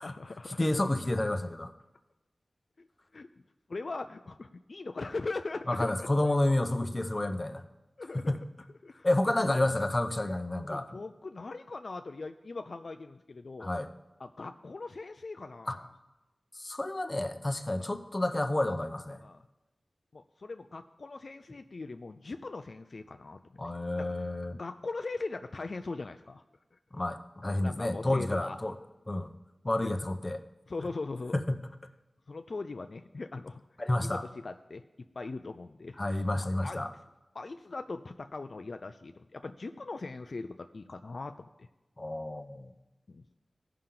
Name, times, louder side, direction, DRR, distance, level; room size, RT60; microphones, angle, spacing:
voice 1, 0.0-0.7 2.8-2.9 3.1-3.3 3.7-6.4 8.0-8.4 8.8-9.5 10.7-13.7 14.2-15.9 17.8-17.9 19.2-19.5 20.1-23.7 24.0-24.3 24.5-26.4 26.7-26.8 27.4-28.6 30.7-31.3 32.3-33.6 34.0-34.8 35.2-36.2 36.6-36.8 37.3-41.7 43.1-43.2, left 3 dB, 65° left, 8 dB, 0.3 m, -40 dB
voice 2, 0.6-1.7 5.7-7.6 8.1-8.4 9.0-10.9 13.6-13.9 15.7-15.8 16.6-19.2 23.6-24.6 26.9-28.7 29.1-29.3 29.6-30.4 31.3-31.6 33.8-34.2 36.0-36.9 42.0-42.7, left 1 dB, 30° left, 8 dB, 0.6 m, -30 dB
16.0 x 5.7 x 3.8 m, 1.0 s
wide cardioid pair, 80°, 0 cm